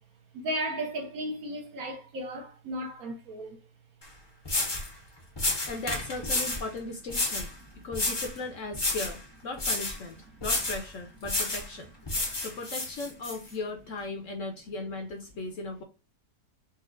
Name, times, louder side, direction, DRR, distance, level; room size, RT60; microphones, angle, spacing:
voice 1, 0.3-3.6, right 1 dB, 65° right, 1.2 m, -35 dB
sound 1, 4.0-4.1 4.4-4.9 5.4-6.7 7.1-7.5 7.9-8.4 8.7-9.2 9.6-10.0 10.4-10.8 11.2-11.7 12.1-13.4, left 2 dB, 30° left, 0.5 m, -30 dB
voice 2, 5.7-7.5 7.8-10.2 10.4-11.9 12.4-15.8, left 3 dB, 60° left, 0.9 m, -37 dB
4.1 x 2.4 x 2.3 m
omnidirectional pair, 1.8 m